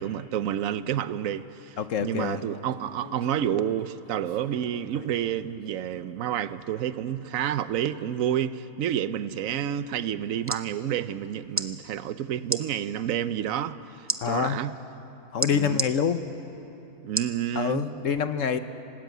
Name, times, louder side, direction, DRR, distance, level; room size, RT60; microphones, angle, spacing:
voice 1, 0.0-14.7 15.5-15.8 17.0-17.8, right 10 dB, 70° right, 1.1 m, -29 dB
voice 2, 1.8-2.4 14.2-14.6 15.3-16.2 17.5-18.6, left 7 dB, 65° left, 1.2 m, -26 dB
Speech, 2.3-5.7, left 3 dB, 40° left, 2.0 m, -50 dB
sound 1, 10.2-10.7 11.5-11.7 12.4-12.6 14.1-14.2 15.4-15.9 17.1-17.4 17.9-18.0, right 2 dB, 15° right, 0.5 m, -28 dB
26.0 x 19.5 x 9.3 m
omnidirectional pair, 1.5 m